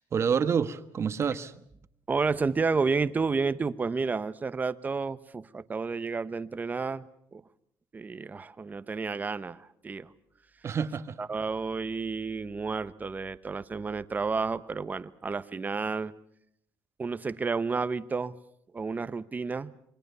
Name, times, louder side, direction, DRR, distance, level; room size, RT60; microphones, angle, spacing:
voice 1, 0.0-1.5 10.6-11.2, right 6 dB, 40° right, 1.3 m, -28 dB
voice 2, 2.1-7.4 7.9-10.1 11.2-16.1 17.0-18.3 18.7-19.7, right 4 dB, 25° right, 1.1 m, -31 dB
27.5 x 24.0 x 6.9 m
cardioid pair, 120°, 7 cm